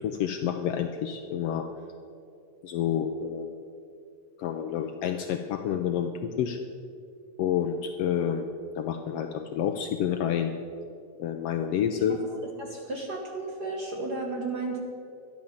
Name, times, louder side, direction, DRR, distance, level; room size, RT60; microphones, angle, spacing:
voice 1, 0.0-1.7 2.6-3.5 4.4-6.6 7.4-8.4 8.8-10.5 11.2-12.2, left 9 dB, 80° left, 6 dB, 1.4 m, -29 dB
voice 2, 12.0-14.8, right 3 dB, 50° right, 0 dB, 1.3 m, -34 dB
13.0 x 10.5 x 7.1 m, 2.5 s
omnidirectional pair, 3.3 m